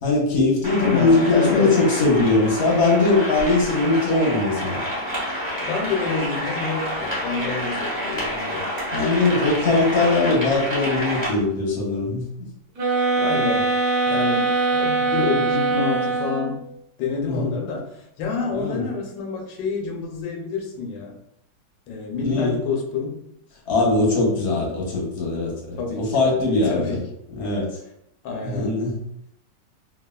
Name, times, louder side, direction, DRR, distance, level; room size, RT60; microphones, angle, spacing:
voice 1, 0.0-4.8 8.9-12.2 17.3-17.5 18.5-18.8 22.2-22.6 23.7-27.0 27.4-27.8 28.5-28.9, left 3 dB, 55° left, -3 dB, 0.7 m, -20 dB
sound 1, 0.6-11.3, equal, 20° right, 0.7 m, -28 dB
voice 2, 0.8-1.8 5.6-8.7 13.2-13.7 14.1-16.6 17.0-21.2 21.9-23.2 25.8-26.2 26.6-27.0 28.2-28.8, left 4 dB, 90° left, 1 dB, 1.3 m, -28 dB
sound 2, 12.8-16.7, right 3 dB, 65° right, 1.1 m, -22 dB
3.3 x 2.3 x 2.2 m, 0.76 s
omnidirectional pair, 1.9 m